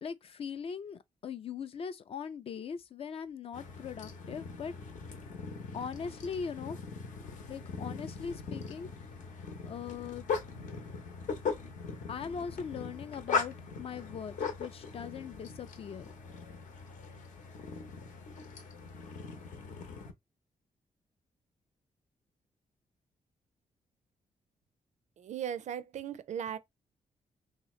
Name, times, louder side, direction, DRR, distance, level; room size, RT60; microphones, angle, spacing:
voice 1, 0.0-4.7 5.7-6.8 7.5-8.9 9.6-10.2 12.1-16.1, left 6 dB, 45° left, 0.4 m, -40 dB
sound 1, 3.5-20.1, left 5 dB, 75° left, 0.9 m, -40 dB
voice 2, 25.2-26.6, right 9 dB, 60° right, 0.4 m, -37 dB
3.4 x 2.8 x 3.1 m
wide cardioid pair, 155°, 13 cm